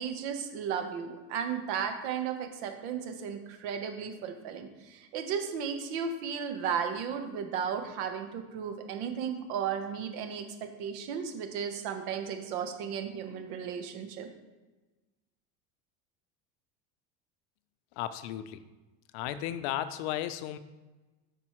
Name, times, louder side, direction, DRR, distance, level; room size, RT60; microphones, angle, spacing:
voice 1, 0.0-14.3, right 7 dB, 75° right, 6 dB, 1.0 m, -35 dB
voice 2, 18.0-18.6 19.1-20.6, left 12 dB, 70° left, 13 dB, 0.5 m, -34 dB
7.4 x 5.3 x 3.0 m, 1.2 s
cardioid pair, 170°, 33 cm